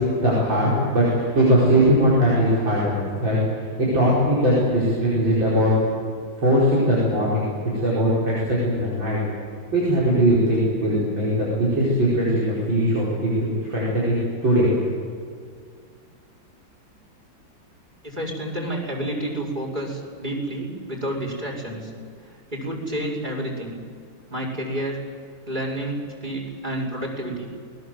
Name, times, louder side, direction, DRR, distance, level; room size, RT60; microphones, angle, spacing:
voice 1, 0.0-2.9 3.2-5.7 6.4-7.5 7.8-9.2 9.7-14.1 14.4-14.7, equal, 75° right, -7 dB, 5.9 m, -20 dB
voice 2, 18.0-21.9 22.5-23.7 24.3-25.0 25.5-27.5, right 1 dB, 20° right, -1 dB, 5.6 m, -29 dB
28.5 x 20.0 x 7.8 m, 2.1 s
omnidirectional pair, 2.1 m